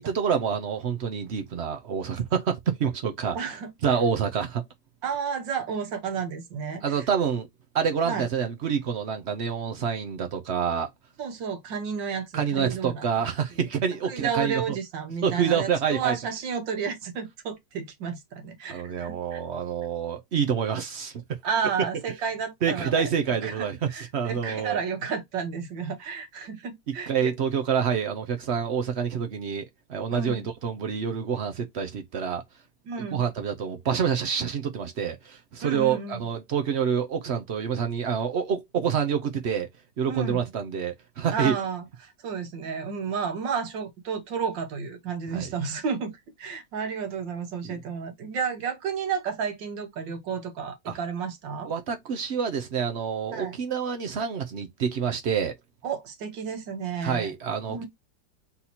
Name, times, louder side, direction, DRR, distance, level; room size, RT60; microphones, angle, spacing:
voice 1, 0.0-3.4 3.8-4.6 6.8-7.5 7.7-10.9 12.3-14.6 15.2-16.2 18.7-21.1 22.6-24.8 27.1-29.6 29.9-32.4 33.1-39.7 40.0-41.6 45.3-45.5 47.6-47.8 50.9-51.0 51.6-55.5 57.0-57.9, right 7 dB, 60° right, 0.7 m, -27 dB
voice 2, 3.3-3.7 5.0-6.8 8.1-8.3 11.2-13.3 14.1-19.4 21.4-23.1 23.4-27.3 30.1-30.5 32.9-33.3 35.6-36.3 40.1-40.5 41.3-46.1 46.4-51.7 53.3-53.6 55.8-57.3 57.7-57.9, right 6 dB, 85° right, 1.8 m, -32 dB
4.1 x 2.8 x 4.2 m
omnidirectional pair, 1.9 m